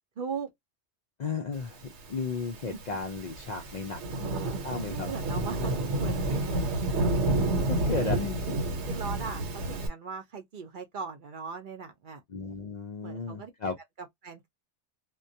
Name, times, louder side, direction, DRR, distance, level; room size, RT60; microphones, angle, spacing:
voice 1, 0.2-0.5 4.2-6.6 7.9-8.2 8.9-12.2 13.0-13.5 14.2-14.5, right 5 dB, 55° right, 0.7 m, -39 dB
voice 2, 1.2-4.3 4.6-5.1 5.6-5.8 7.7-8.5 12.3-13.8, left 4 dB, 60° left, 0.4 m, -34 dB
Thunderstorm / Rain, 2.2-9.9, right 2 dB, 75° right, 1.0 m, -30 dB
2.2 x 2.2 x 2.6 m
omnidirectional pair, 1.2 m